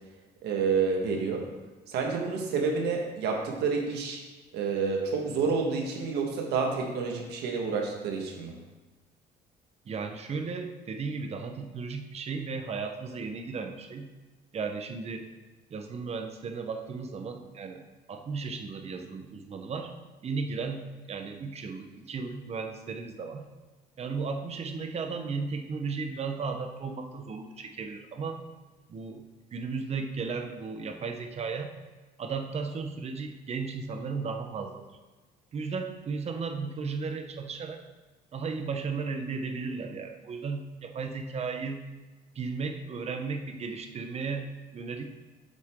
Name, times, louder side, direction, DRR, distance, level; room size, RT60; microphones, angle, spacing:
voice 1, 0.4-1.4 1.9-4.2 4.5-8.6, right 5 dB, 80° right, 1 dB, 1.6 m, -29 dB
voice 2, 9.9-14.1 14.5-15.3 15.7-17.8 18.1-19.9 20.2-23.5 24.0-28.4 28.9-29.2 29.5-31.7 32.2-34.8 35.5-37.8 38.3-41.8 42.3-44.5 44.7-45.0, right 4 dB, 40° right, 5 dB, 0.9 m, -35 dB
7.8 x 5.9 x 3.7 m, 1.2 s
cardioid pair, 110°, 17 cm